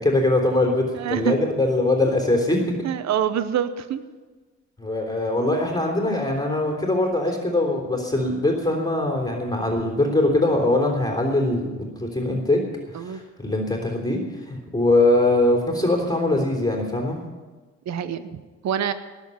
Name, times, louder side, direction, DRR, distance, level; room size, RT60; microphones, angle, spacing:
voice 1, 0.0-2.6 4.8-12.6 13.0-14.2 14.5-17.2, left 2 dB, 15° left, 1 dB, 3.4 m, -22 dB
voice 2, 0.9-1.4 2.8-4.0 12.9-13.2 17.9-18.9, right 9 dB, 65° right, 12 dB, 0.9 m, -26 dB
18.0 x 7.2 x 9.6 m, 1.3 s
cardioid pair, 90°, 30 cm